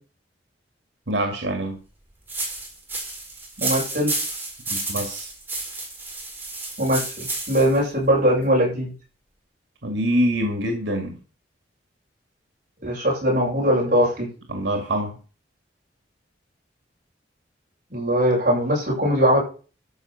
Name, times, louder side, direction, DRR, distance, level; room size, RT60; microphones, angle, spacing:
voice 1, 1.1-1.8 4.7-5.3 9.8-11.2 14.5-15.2, right 1 dB, 90° right, 5 dB, 2.0 m, -25 dB
sound 1, 2.3-7.8, right 2 dB, 10° right, 4.3 m, -31 dB
voice 2, 3.6-4.1 6.8-8.9 12.8-14.3 17.9-19.4, equal, 50° right, -4 dB, 7.2 m, -21 dB
13.0 x 5.4 x 6.9 m, 0.38 s
head